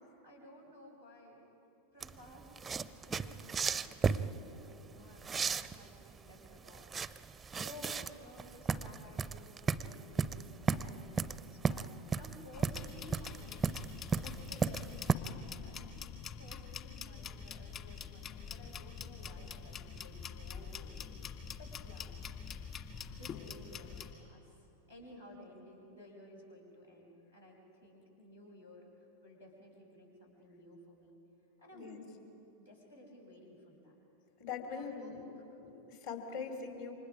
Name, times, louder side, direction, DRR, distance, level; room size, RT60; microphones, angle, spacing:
voice 1, 0.2-1.4 1.9-15.9 16.3-22.1 23.1-31.2 31.6-32.2 32.6-33.9 34.7-35.2, left 1 dB, 85° left, -4 dB, 7.2 m, -55 dB
sound 1, 2.0-15.2, right 5 dB, 15° right, 0.6 m, -35 dB
sound 2, 12.5-24.1, left 6 dB, 30° left, 1.8 m, -45 dB
voice 2, 34.4-35.2 35.6-36.9, left 6 dB, 50° left, 4 dB, 3.2 m, -42 dB
29.0 x 26.0 x 4.9 m, 3.0 s
figure-of-eight pair, 90°, 0 cm